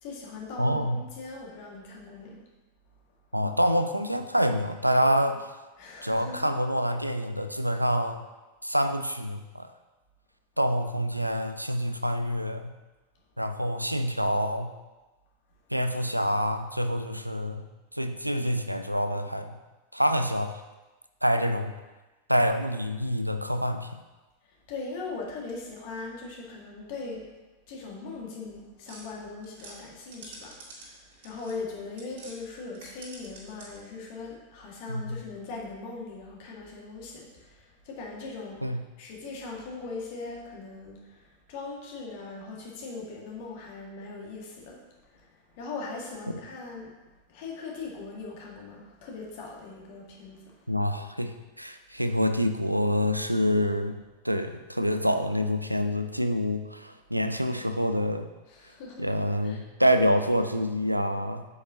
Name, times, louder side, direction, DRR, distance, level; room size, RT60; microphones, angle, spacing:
voice 1, 0.0-2.4 5.8-6.5 24.4-27.3 27.7-38.6 39.0-46.9 47.3-50.5 51.9-52.0 58.5-59.1 59.4-59.6, left 3 dB, 50° left, -2 dB, 1.9 m, -40 dB
voice 2, 0.6-1.0 3.3-5.4 6.0-8.2 8.6-9.7 10.6-12.7 13.4-14.7 15.7-17.7 17.9-19.6 19.9-20.6 21.2-21.8 22.3-23.9 34.9-35.2 38.6-38.8 50.7-54.0 54.2-58.3 59.0-61.5, equal, 90° right, 8 dB, 0.4 m, -26 dB
sound 1, 28.9-32.4 32.7-33.9, right 2 dB, 55° right, 2.2 m, -48 dB
7.9 x 7.4 x 2.8 m, 1.1 s
figure-of-eight pair, 90°, 0 cm